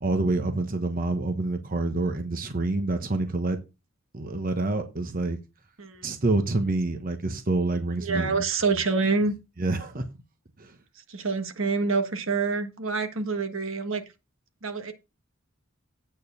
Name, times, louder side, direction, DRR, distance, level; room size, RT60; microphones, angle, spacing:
voice 1, 0.0-3.6 4.1-5.4 6.0-8.4 9.6-10.1 10.6-10.7, right 2 dB, 45° right, 1.1 m, -27 dB
voice 2, 8.0-9.3 11.1-14.0 14.6-14.9, right 4 dB, 80° right, 1.4 m, -26 dB
8.7 x 4.5 x 7.1 m
head